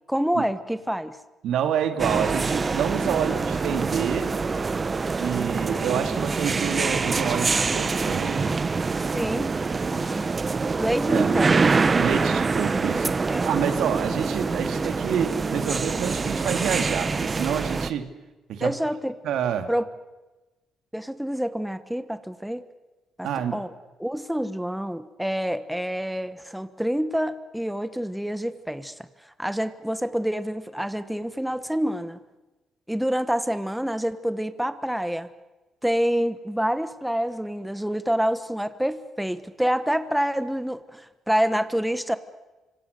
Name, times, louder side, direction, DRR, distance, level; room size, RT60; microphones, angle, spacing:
voice 1, 0.1-1.2 9.1-10.3 10.8-11.7 13.3-13.5 18.6-19.1 19.7-19.9 20.9-22.6 23.2-23.7 24.0-28.9 29.4-32.2 32.9-35.3 35.8-42.2, equal, 5° right, 12 dB, 1.1 m, -27 dB
voice 2, 1.4-4.3 5.2-8.6 11.1-11.3 12.0-13.1 13.5-18.0 18.5-18.7 19.2-19.7 23.2-23.6, right 8 dB, 80° right, 7 dB, 2.5 m, -28 dB
sound 1, 2.0-17.9, right 4 dB, 30° right, 0.9 m, -25 dB
25.5 x 25.5 x 6.7 m, 1.1 s
cardioid pair, 105°, 0 cm